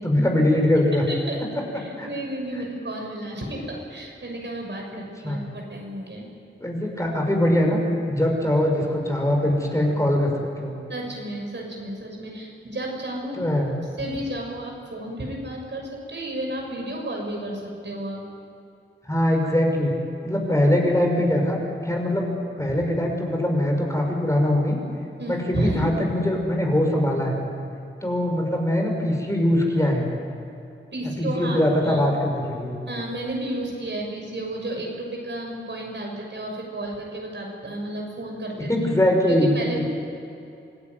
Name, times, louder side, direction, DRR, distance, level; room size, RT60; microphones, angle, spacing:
voice 1, 0.0-1.0 2.0-2.1 4.9-5.4 6.6-10.8 13.3-13.7 19.0-19.9 20.2-21.6 21.8-24.8 25.3-27.4 28.0-30.1 31.2-32.8 38.7-39.8, left 1 dB, 15° left, 1 dB, 5.9 m, -22 dB
voice 2, 1.1-1.4 1.7-6.3 10.9-13.4 14.0-18.2 25.2-25.9 30.9-31.6 31.8-32.0 32.9-38.7 39.3-39.8, right 1 dB, 65° right, 0 dB, 6.7 m, -32 dB
26.5 x 17.0 x 9.6 m, 2.7 s
wide cardioid pair, 75°, 20 cm